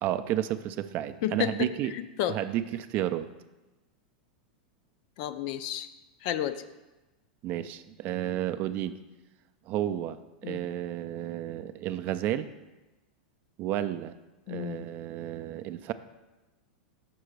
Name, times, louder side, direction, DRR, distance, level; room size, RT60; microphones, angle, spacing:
voice 1, 0.0-1.9 2.3-3.3 7.4-9.0 9.7-12.5 13.6-14.2 14.5-15.9, right 12 dB, 40° right, 11 dB, 0.4 m, -32 dB
voice 2, 1.2-2.4 5.2-5.9 6.2-6.6 10.4-10.6 14.5-14.9, left 11 dB, 55° left, 12 dB, 0.4 m, -31 dB
6.0 x 4.5 x 6.5 m, 1.1 s
supercardioid pair, 135°, 5 cm